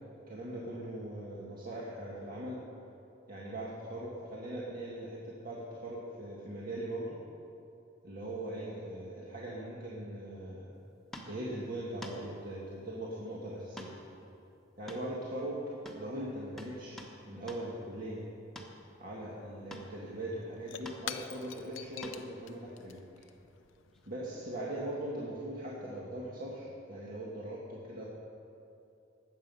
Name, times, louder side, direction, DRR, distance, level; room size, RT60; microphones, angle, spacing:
voice 1, 0.3-2.6 3.3-7.2 8.0-10.7 11.3-13.9 14.8-15.6 15.9-17.0 17.2-18.3 19.0-23.0 24.0-28.0, right 1 dB, 50° right, -5 dB, 1.7 m, -40 dB
sound 1, 11.1-11.4 12.0-12.2 13.8-14.0 14.2-14.3 14.9-15.5 15.8-16.1 16.6-17.2 17.5-17.7 18.6-18.7 19.7-19.9 20.9-21.0 22.0-22.3 23.9-24.0, equal, ahead, 1.3 m, -47 dB
Shatter / Crushing, 20.0-24.9, left 9 dB, 85° left, 0.6 m, -47 dB
19.5 x 7.9 x 5.5 m, 2.8 s
head